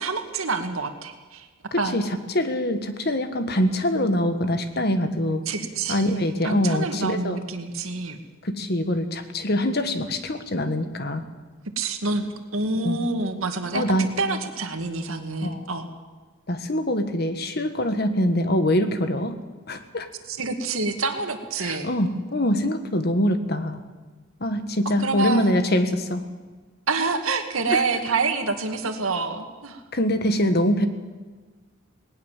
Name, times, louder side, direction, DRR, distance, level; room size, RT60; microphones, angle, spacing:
voice 1, 0.0-1.5 1.8-1.9 5.5-6.0 6.4-8.2 11.8-13.8 14.2-15.9 20.3-21.9 25.0-25.5 26.9-29.8, right 3 dB, 85° right, 6 dB, 2.2 m, -27 dB
voice 2, 1.7-5.4 5.9-7.4 8.4-11.2 12.8-13.0 13.7-14.1 15.4-15.7 16.5-19.4 19.7-20.1 21.6-23.8 24.4-26.2 27.7-27.8 29.9-30.9, left 1 dB, 50° left, 9 dB, 1.6 m, -24 dB
19.0 x 19.0 x 7.5 m, 1.4 s
head